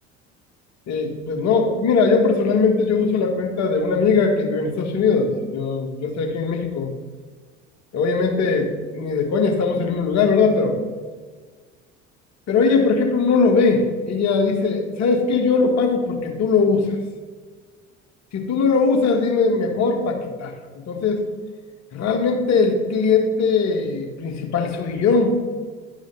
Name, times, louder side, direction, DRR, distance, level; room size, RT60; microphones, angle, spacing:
voice 1, 0.9-6.9 7.9-10.8 12.5-16.9 18.3-20.5 20.9-21.3 21.9-25.4, left 4 dB, 50° left, 3 dB, 1.6 m, -20 dB
11.0 x 4.9 x 4.0 m, 1.5 s
hypercardioid pair, 70°, 36 cm